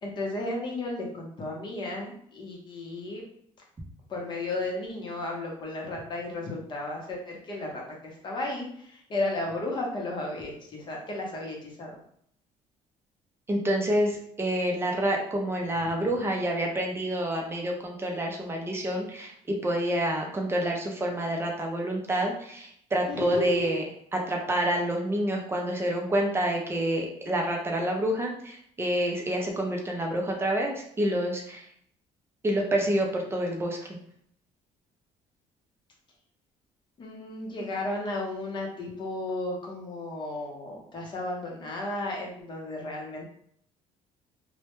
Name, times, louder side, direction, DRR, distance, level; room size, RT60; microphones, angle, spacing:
voice 1, 0.0-3.2 4.1-7.8 8.2-12.0 23.1-23.7 37.0-43.2, left 2 dB, 35° left, -1 dB, 0.7 m, -34 dB
voice 2, 13.5-23.8 24.1-31.7 32.4-34.0, right 1 dB, 20° right, 1 dB, 0.5 m, -28 dB
2.1 x 2.1 x 2.9 m, 0.66 s
cardioid pair, 135°, 14 cm